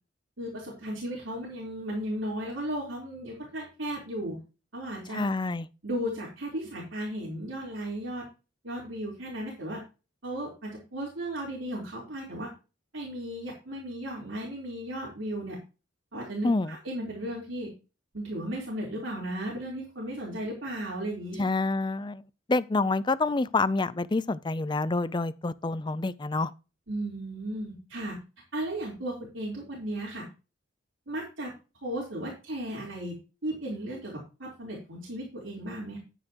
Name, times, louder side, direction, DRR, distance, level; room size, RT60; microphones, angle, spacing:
voice 1, 0.4-4.4 4.7-5.2 5.8-8.3 8.6-9.8 10.2-12.5 12.9-15.6 16.1-17.7 18.1-21.4 26.9-28.2 28.5-30.2 31.1-31.5 31.8-33.2 33.4-36.0, right 1 dB, 80° right, 3.9 m, -35 dB
voice 2, 5.1-5.7 16.4-16.8 21.4-22.2 22.5-26.5, left 3 dB, 25° left, 0.4 m, -27 dB
10.0 x 9.7 x 3.0 m
head